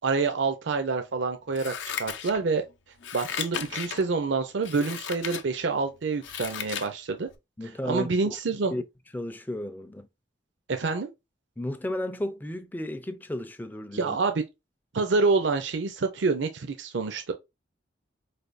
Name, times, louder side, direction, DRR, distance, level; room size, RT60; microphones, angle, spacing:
voice 1, 0.0-1.7 2.0-2.6 3.1-7.3 7.9-8.7 10.7-11.1 13.9-14.4 14.9-17.3, right 4 dB, 75° right, 0.5 m, -27 dB
Scissors, 1.5-2.6 3.0-4.0 4.6-5.4 5.9-6.9 7.3-7.4, left 8 dB, 75° left, 0.5 m, -35 dB
voice 2, 7.6-8.8 9.1-10.1 11.6-14.2, left 1 dB, 10° left, 0.3 m, -34 dB
4.4 x 3.4 x 2.5 m
head